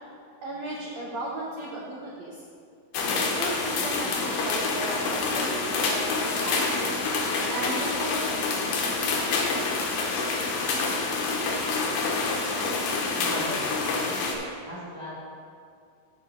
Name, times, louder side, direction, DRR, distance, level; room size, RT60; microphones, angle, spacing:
voice 1, 0.4-2.4 3.3-7.1 7.5-9.4, right 2 dB, 75° right, -3 dB, 1.6 m, -36 dB
sound 1, 2.9-14.4, left 3 dB, 70° left, 2.4 m, -27 dB
voice 2, 12.4-14.2 14.6-15.2, left 1 dB, 40° left, -10 dB, 1.7 m, -40 dB
8.5 x 6.5 x 5.0 m, 2.4 s
omnidirectional pair, 4.2 m